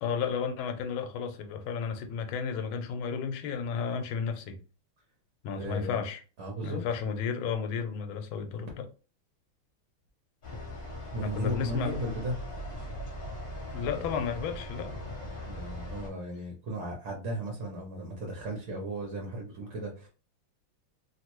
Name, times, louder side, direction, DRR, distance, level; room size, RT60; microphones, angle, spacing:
voice 1, 0.0-4.6 5.4-6.2 6.6-8.9 11.2-12.0 13.7-15.1, left 6 dB, 85° left, 1.4 m, -33 dB
voice 2, 5.6-6.0 6.4-6.8 11.1-12.4 13.9-14.2 15.5-20.1, right 1 dB, 55° right, 0.9 m, -36 dB
sound 1, 10.4-16.1, left 1 dB, 40° left, 1.1 m, -40 dB
3.2 x 2.5 x 3.0 m
omnidirectional pair, 2.2 m